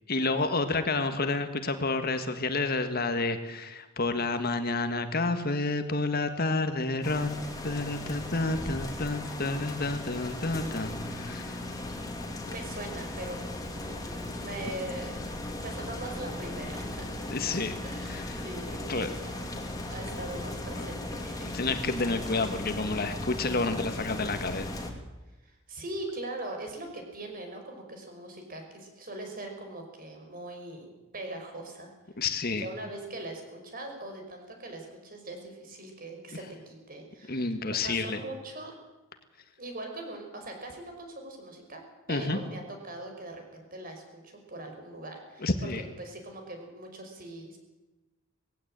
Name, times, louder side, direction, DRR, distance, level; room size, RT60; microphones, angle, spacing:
voice 1, 0.1-7.4 7.6-11.6 17.3-17.8 18.1-18.2 18.9-19.1 20.8-20.9 21.4-24.7 32.2-32.6 37.3-38.2 42.1-42.4 45.4-45.8, left 3 dB, 50° left, 8 dB, 1.7 m, -29 dB
sound 1, 7.0-24.9, left 1 dB, 20° left, 2.7 m, -37 dB
voice 2, 12.5-13.4 13.7-17.1 17.8-19.3 19.9-21.5 25.4-31.9 32.5-38.7 39.6-41.8 42.1-47.6, right 1 dB, 45° right, 4 dB, 5.4 m, -41 dB
19.5 x 16.0 x 9.0 m, 1.1 s
head